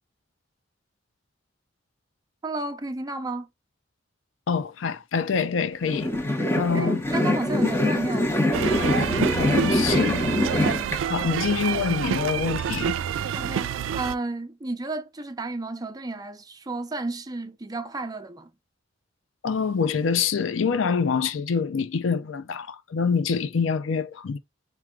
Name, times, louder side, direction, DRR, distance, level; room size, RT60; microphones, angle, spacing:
voice 1, 2.4-3.5 6.7-8.3 13.3-18.5, right 2 dB, 20° right, 0.5 m, -32 dB
voice 2, 4.5-6.1 6.6-7.0 9.3-10.3 11.1-13.0 19.4-24.4, left 5 dB, 90° left, 0.5 m, -26 dB
sound 1, 5.8-11.0, left 1 dB, 15° left, 0.8 m, -24 dB
sound 2, 8.5-14.2, right 8 dB, 80° right, 0.3 m, -28 dB
4.6 x 2.3 x 3.6 m
head